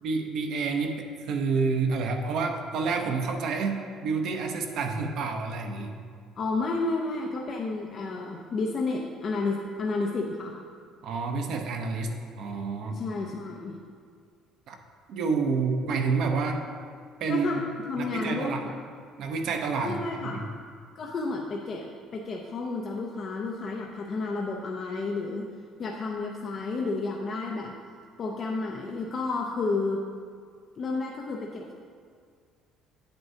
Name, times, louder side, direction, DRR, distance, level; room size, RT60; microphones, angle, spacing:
voice 1, 0.0-5.9 11.0-13.0 14.7-14.8 15.1-16.6 17.2-17.6 18.0-18.6 19.2-20.4, right 4 dB, 50° right, 4 dB, 0.7 m, -29 dB
voice 2, 6.4-10.6 12.9-13.8 17.3-17.6 17.9-18.8 19.8-20.5 21.0-25.5 25.8-27.7 28.2-30.0 30.8-31.7, left 3 dB, 30° left, 0 dB, 0.4 m, -31 dB
9.1 x 7.9 x 2.7 m, 2.1 s
cardioid pair, 180°, 0 cm